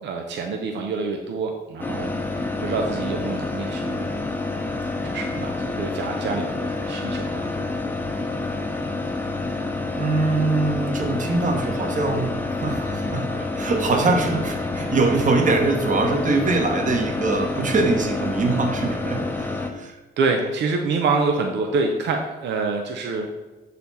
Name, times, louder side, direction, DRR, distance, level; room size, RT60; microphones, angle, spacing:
voice 1, 0.0-4.1 5.0-7.5 19.8-19.9 20.2-23.3, right 4 dB, 80° right, 3 dB, 0.7 m, -26 dB
sound 1, 1.8-19.7, left 2 dB, 10° left, 0.8 m, -28 dB
voice 2, 10.0-20.0, right 3 dB, 45° right, 3 dB, 1.2 m, -23 dB
6.9 x 4.2 x 4.2 m, 1.2 s
cardioid pair, 90°, 18 cm